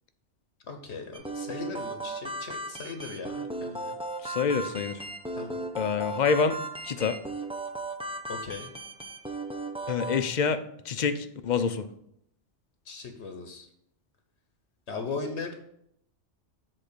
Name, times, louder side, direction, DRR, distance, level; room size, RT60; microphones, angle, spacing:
voice 1, 0.7-4.0 5.3-5.6 8.3-8.7 12.8-13.7 14.9-15.6, left 4 dB, 70° left, 5 dB, 1.2 m, -38 dB
sound 1, 1.1-10.2, right 2 dB, 10° right, 0.4 m, -36 dB
voice 2, 4.2-5.0 5.8-6.6 6.8-7.2 9.9-11.9, left 6 dB, 50° left, 10 dB, 0.6 m, -27 dB
7.8 x 3.8 x 6.6 m, 0.74 s
omnidirectional pair, 1.2 m